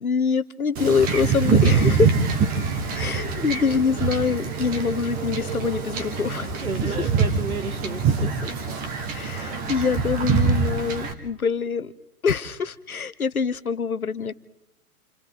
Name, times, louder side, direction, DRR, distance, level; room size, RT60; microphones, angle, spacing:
voice 1, 0.0-2.1 2.9-6.5 9.1-11.9 12.2-14.3, left 5 dB, 75° left, 14 dB, 1.2 m, -24 dB
Wind / Ocean / Boat Water vehicle, 0.8-11.1, right 5 dB, 20° right, 1.8 m, -24 dB
voice 2, 1.6-2.0 2.6-2.8 6.6-8.7 9.4-9.7, right 4 dB, 75° right, 10 dB, 1.7 m, -34 dB
29.0 x 28.0 x 4.0 m, 0.89 s
figure-of-eight pair, 120°, 44 cm